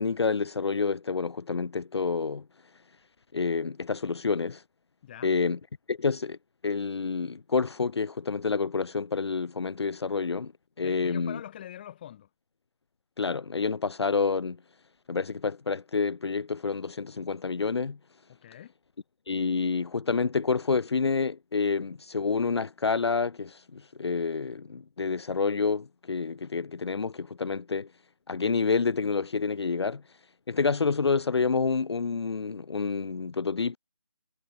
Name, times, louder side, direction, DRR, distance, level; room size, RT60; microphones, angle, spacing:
voice 1, 0.0-2.5 3.3-4.6 5.2-5.6 5.9-6.4 6.6-10.5 10.8-11.4 13.2-14.6 15.1-18.0 19.3-27.9 28.3-30.0 30.5-33.8, left 5 dB, 70° left, 0.4 m, -28 dB
voice 2, 5.0-5.3 10.8-12.3 18.3-18.7, left 11 dB, 20° left, 1.8 m, -44 dB
figure-of-eight pair, 155°, 14 cm